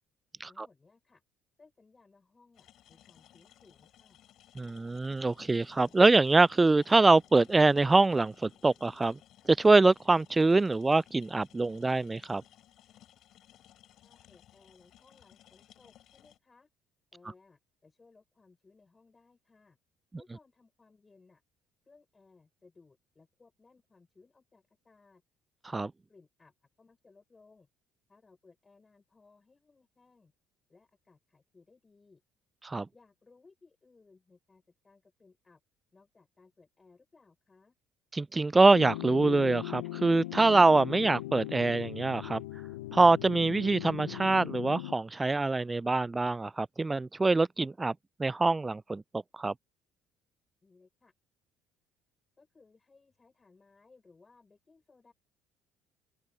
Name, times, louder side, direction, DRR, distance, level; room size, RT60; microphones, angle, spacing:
voice 1, 0.5-1.2 1.6-4.2 14.0-16.7 17.1-19.8 20.1-21.4 21.8-25.2 26.1-27.7 28.1-30.3 30.7-32.2 32.9-35.6 35.9-37.8 50.6-51.1 52.4-55.1, left 4 dB, 25° left, 6.6 m, -62 dB
sound 1, 2.5-16.4, left 12 dB, 60° left, 3.3 m, -60 dB
voice 2, 4.6-9.1 9.5-12.4 25.7-25.9 32.6-32.8 38.1-42.4 42.9-47.9 48.2-49.0 49.4-49.5, right 3 dB, 20° right, 0.3 m, -24 dB
sound 2, 38.7-44.9, left 17 dB, 85° left, 0.9 m, -39 dB
open air
hypercardioid pair, 55°, 0 cm